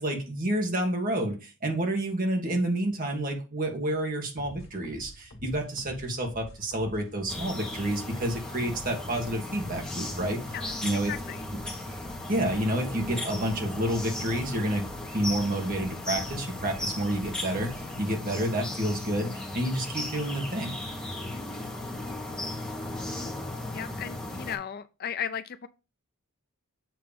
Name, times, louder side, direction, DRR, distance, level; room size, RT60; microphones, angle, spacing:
voice 1, 0.0-10.6 10.8-11.1 12.3-14.9 15.1-20.8, right 1 dB, 40° right, 1.7 m, -29 dB
sound 1, 4.4-18.0, equal, 65° left, 1.7 m, -48 dB
sound 2, 7.3-24.6, left 1 dB, 5° left, 1.7 m, -36 dB
voice 2, 10.5-11.4 21.3-21.6 23.7-25.7, left 8 dB, 45° left, 0.4 m, -36 dB
7.8 x 3.3 x 5.1 m
head